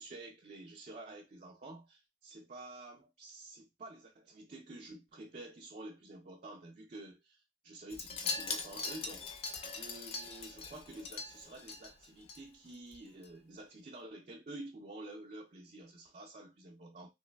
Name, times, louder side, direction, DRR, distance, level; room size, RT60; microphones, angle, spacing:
voice 1, 0.0-17.1, right 2 dB, 45° right, 0.4 m, -50 dB
Wind chime, 7.9-12.4 12.7-13.0 13.2-13.3, left 3 dB, 35° left, 0.4 m, -41 dB
3.0 x 2.9 x 2.2 m
head